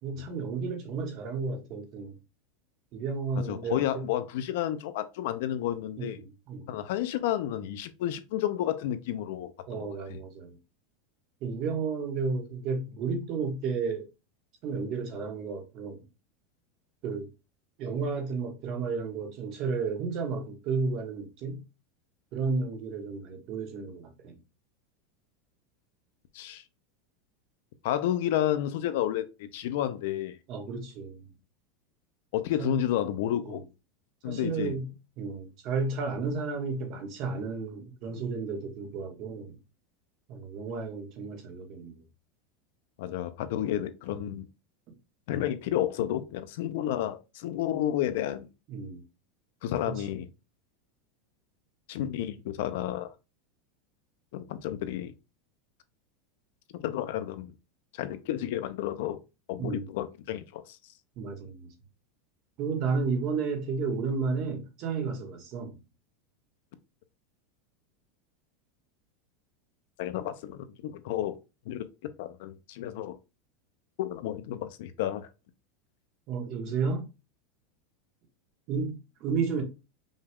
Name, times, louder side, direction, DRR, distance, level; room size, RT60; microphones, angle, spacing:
voice 1, 0.0-2.2 2.9-4.0 6.0-6.7 9.7-10.6 11.4-14.1 14.6-16.0 17.0-17.3 17.8-21.6 22.3-24.4 30.5-31.3 32.6-32.8 33.4-33.6 34.2-34.8 35.2-39.6 40.3-42.0 48.7-49.0 49.9-50.0 59.6-59.9 61.2-61.7 62.6-65.7 76.3-77.0 78.7-79.6, right 4 dB, 35° right, 1.1 m, -32 dB
voice 2, 3.5-6.2 6.7-10.2 26.3-26.6 27.8-30.4 32.3-33.6 34.2-34.8 43.0-44.5 45.3-48.5 49.6-50.3 51.9-53.1 54.3-55.1 56.8-57.5 58.0-59.2 59.5-60.8 70.0-71.3 71.7-73.2 74.0-75.3, left 11 dB, 55° left, 0.5 m, -31 dB
5.3 x 2.3 x 3.5 m
supercardioid pair, 175°, 0 cm